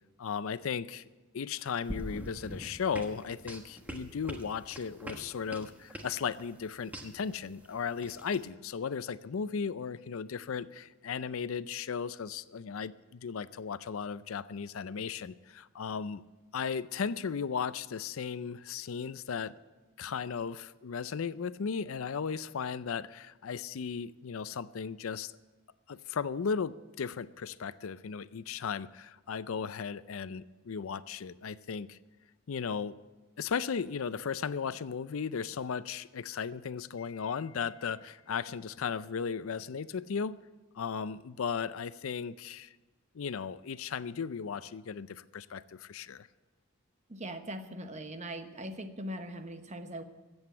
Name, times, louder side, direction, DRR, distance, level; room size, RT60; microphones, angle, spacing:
voice 1, 0.2-1.0 1.3-16.2 16.5-19.5 20.0-25.3 25.9-32.0 32.5-32.9 33.4-40.4 40.7-42.7 43.1-46.3, left 6 dB, 75° left, 16 dB, 0.5 m, -36 dB
sound 1, 1.8-8.5, equal, 10° right, 1.2 m, -44 dB
voice 2, 47.1-50.0, right 1 dB, 35° right, 8 dB, 1.0 m, -40 dB
14.5 x 8.0 x 8.4 m, 1.2 s
head